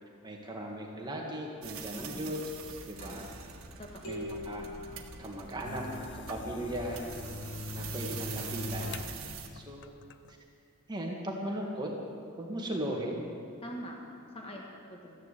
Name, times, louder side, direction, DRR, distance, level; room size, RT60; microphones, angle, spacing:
voice 1, 0.2-2.4 2.6-3.3 4.0-4.7 5.2-5.9 6.3-7.0 7.7-9.0 9.5-10.0 10.3-10.4 10.9-11.9 12.4-13.2, right 1 dB, 20° right, -1 dB, 1.7 m, -37 dB
sound 1, 1.6-9.5, right 5 dB, 65° right, 1.5 m, -44 dB
voice 2, 1.9-2.3 3.0-3.2 3.8-4.2 13.6-14.0 14.3-15.2, equal, 25° left, 0 dB, 1.5 m, -44 dB
sound 2, 4.0-5.9, left 1 dB, 85° left, 4.5 m, -43 dB
sound 3, 5.6-9.2 9.6-10.3, left 3 dB, 50° left, 0.6 m, -41 dB
14.5 x 11.0 x 8.3 m, 2.4 s
head